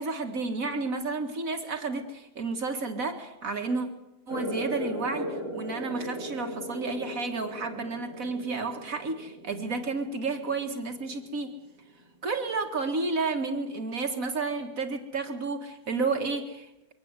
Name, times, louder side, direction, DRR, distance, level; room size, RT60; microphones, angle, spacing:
voice 1, 0.0-3.9 4.3-11.6 12.2-16.9, right 3 dB, 70° right, 5 dB, 2.3 m, -31 dB
sound 1, 4.3-11.4, equal, 20° right, 5.8 m, -38 dB
23.5 x 18.0 x 8.1 m, 0.90 s
omnidirectional pair, 1.5 m